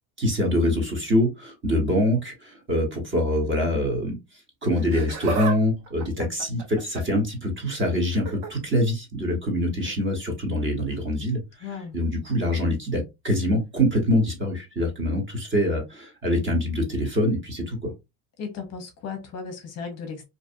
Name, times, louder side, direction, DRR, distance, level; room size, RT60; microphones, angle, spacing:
voice 1, 0.2-4.2 4.6-11.4 11.9-17.9, left 1 dB, 30° right, 1.1 m, -24 dB
Laughter, 4.7-5.6 5.9-7.2 8.1-8.5 9.8-10.0 10.9-11.0, right 5 dB, 60° right, 1.1 m, -32 dB
voice 2, 11.6-12.0 18.4-20.2, left 5 dB, 35° left, 0.7 m, -35 dB
2.7 x 2.3 x 2.5 m
supercardioid pair, 125°, 43 cm